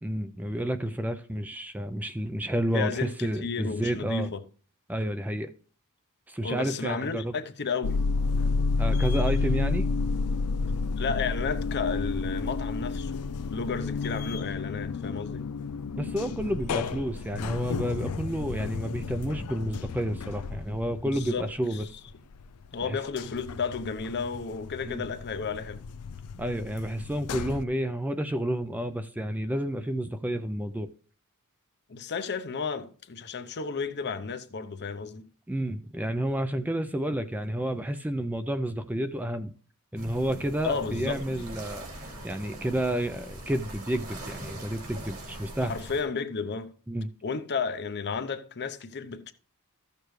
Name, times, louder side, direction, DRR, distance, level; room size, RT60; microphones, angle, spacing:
voice 1, 0.0-4.3 4.9-5.5 6.3-7.4 8.8-9.9 16.0-21.9 22.8-23.0 24.8-25.0 26.4-30.9 35.5-39.5 39.9-45.7 46.9-47.1, right 1 dB, 5° right, 0.4 m, -30 dB
voice 2, 2.7-4.4 6.4-8.0 11.0-13.3 13.5-15.4 21.0-21.8 22.7-25.8 31.9-35.3 40.6-41.2 45.6-46.7 47.2-49.3, left 5 dB, 50° left, 0.7 m, -33 dB
sound 1, 7.8-22.4 22.8-27.6, left 4 dB, 90° left, 0.5 m, -31 dB
sound 2, 40.0-46.0, right 1 dB, 70° right, 3.0 m, -41 dB
14.0 x 6.7 x 3.2 m
head